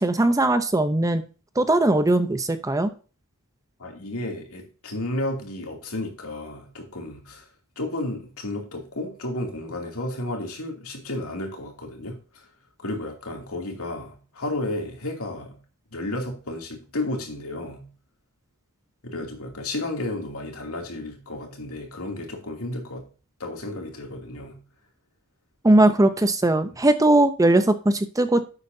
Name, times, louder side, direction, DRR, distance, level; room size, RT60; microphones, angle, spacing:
voice 1, 0.0-1.2 1.6-2.9 25.6-28.4, right 2 dB, 15° right, 10 dB, 0.6 m, -19 dB
voice 2, 3.8-7.5 7.8-12.5 12.8-15.6 15.9-17.9 19.0-23.1 23.4-24.6, left 1 dB, 75° left, 1 dB, 2.6 m, -32 dB
10.5 x 8.0 x 2.7 m, 0.36 s
head